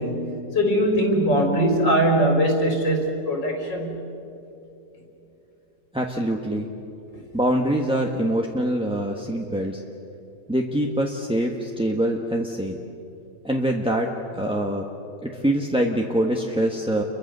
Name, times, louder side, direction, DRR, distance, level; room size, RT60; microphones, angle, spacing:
voice 1, 0.0-4.0, equal, 85° left, 2 dB, 4.8 m, -21 dB
voice 2, 5.9-6.7 7.3-9.8 10.5-12.8 13.4-14.9 15.2-17.0, right 1 dB, 5° right, 0 dB, 1.1 m, -24 dB
30.0 x 23.0 x 6.7 m, 2.9 s
omnidirectional pair, 1.9 m